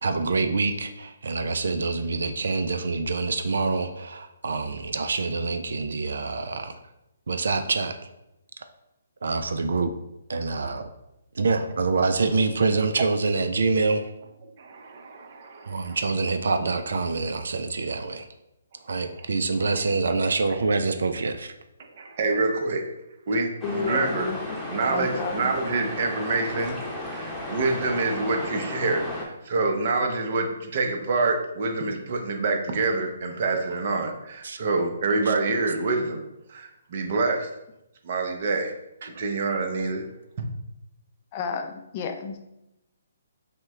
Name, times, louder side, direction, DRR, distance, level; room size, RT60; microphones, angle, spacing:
voice 1, 0.0-6.8 7.3-8.0 9.2-9.9 10.3-10.8 11.3-14.1 15.7-18.3 18.9-21.5 34.4-34.6 35.3-35.4 39.0-39.1, right 3 dB, 70° right, 8 dB, 0.4 m, -26 dB
voice 2, 14.6-16.0 19.7-19.8 21.9-22.8 23.3-24.3 24.7-26.7 27.0-36.2 36.5-37.5 38.0-38.7 39.0-40.0 40.4-40.5, right 3 dB, 50° right, 3 dB, 0.8 m, -26 dB
voice 3, 23.6-24.6 24.9-25.5 41.3-42.4, left 5 dB, 35° left, 5 dB, 0.5 m, -31 dB
sound 1, 23.6-29.2, left 1 dB, ahead, 1.0 m, -34 dB
5.5 x 2.2 x 3.5 m, 0.88 s
figure-of-eight pair, 140°, 0 cm